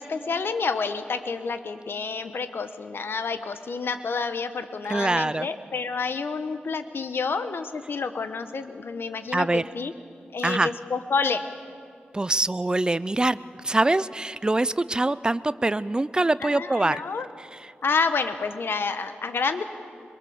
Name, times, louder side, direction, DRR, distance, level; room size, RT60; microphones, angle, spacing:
voice 1, 0.0-9.9 10.3-11.4 16.4-17.3 17.8-19.6, left 4 dB, 75° left, 9 dB, 1.1 m, -29 dB
voice 2, 4.9-5.5 9.3-9.6 10.4-10.7 12.1-17.0 17.4-17.7, right 2 dB, 20° right, 16 dB, 0.6 m, -24 dB
23.5 x 22.0 x 7.2 m, 2.3 s
wide cardioid pair, 80°, 4 cm